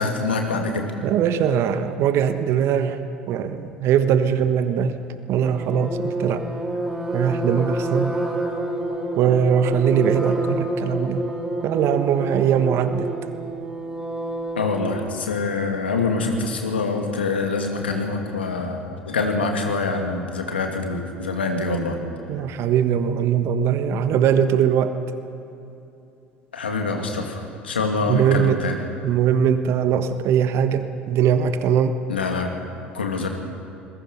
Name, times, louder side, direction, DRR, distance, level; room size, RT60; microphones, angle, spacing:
voice 1, 0.0-0.9 9.2-9.3 14.6-22.0 26.5-28.8 32.1-32.5 32.9-33.3, left 3 dB, 85° left, 3 dB, 2.6 m, -25 dB
voice 2, 1.0-3.0 3.3-5.0 5.3-6.4 7.1-8.2 9.2-11.2 11.6-13.1 22.3-24.9 28.1-28.6 29.0-32.0, right 8 dB, 50° right, 9 dB, 1.3 m, -21 dB
sound 1, 5.4-15.0, right 1 dB, 10° right, 5.4 m, -28 dB
27.5 x 21.5 x 5.6 m, 2.7 s
figure-of-eight pair, 65°, 6 cm